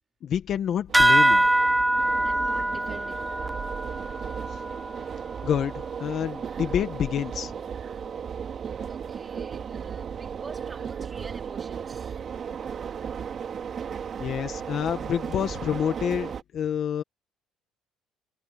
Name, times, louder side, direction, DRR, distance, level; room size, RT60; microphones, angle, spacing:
voice 1, 0.2-1.5 4.5-4.6 5.4-7.5 14.2-17.0, left 9 dB, 50° left, 1.7 m, -28 dB
sound 1, 0.9-5.9, right 1 dB, 5° right, 0.6 m, -24 dB
sound 2, 0.9-16.4, right 7 dB, 40° right, 2.3 m, -35 dB
voice 2, 2.2-3.3 8.9-12.2, right 4 dB, 25° right, 4.0 m, -46 dB
cardioid pair, 120°, 0 cm